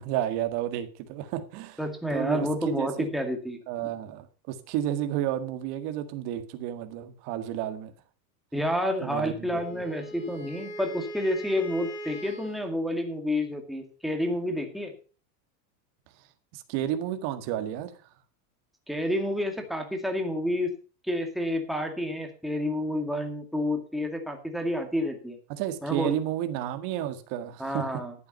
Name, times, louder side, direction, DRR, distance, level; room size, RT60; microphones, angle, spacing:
voice 1, 0.0-1.8 2.1-2.5 2.8-3.1 3.7-7.9 9.0-9.8 16.5-17.9 25.5-27.9, right 11 dB, 55° right, 1.9 m, -31 dB
voice 2, 1.8-3.6 8.5-14.9 18.9-20.7 21.1-25.4 25.8-26.2 27.6-28.1, left 1 dB, ahead, 2.1 m, -29 dB
Wind instrument woodwind instrument, 9.5-12.8, equal, 85° left, 5.2 m, -40 dB
11.5 x 8.6 x 5.5 m
supercardioid pair, 140°, 49 cm